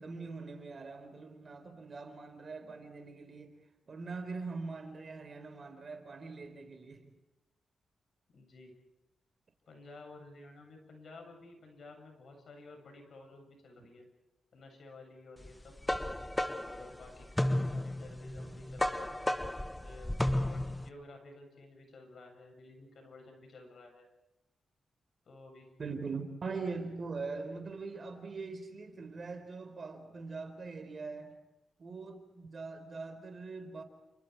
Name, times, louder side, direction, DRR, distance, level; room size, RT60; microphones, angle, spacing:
voice 1, 0.0-3.6 3.9-7.1 25.8-31.3 31.8-33.8, right 4 dB, 50° right, 4.4 m, -42 dB
voice 2, 8.3-8.7 9.7-14.1 14.5-15.8 16.6-19.3 19.8-24.1 25.3-25.7, left 2 dB, 65° left, 7.8 m, -53 dB
sound 1, 15.4-20.9, left 1 dB, 10° left, 1.2 m, -33 dB
29.5 x 28.0 x 4.8 m
cardioid pair, 65°, 0 cm